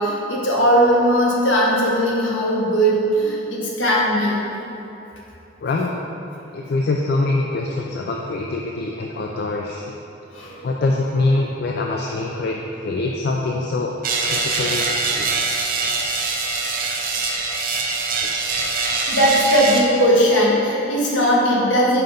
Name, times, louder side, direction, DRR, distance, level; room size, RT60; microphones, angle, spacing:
voice 1, 0.0-4.4 10.3-10.6 19.1-22.0, equal, 70° left, -4 dB, 1.2 m, -18 dB
voice 2, 6.5-9.8 10.3-13.9 14.3-15.4, left 2 dB, 50° left, 0 dB, 0.4 m, -24 dB
sound 1, 14.0-19.8, right 3 dB, 45° right, 0.6 m, -23 dB
5.4 x 5.4 x 3.8 m, 3.0 s
head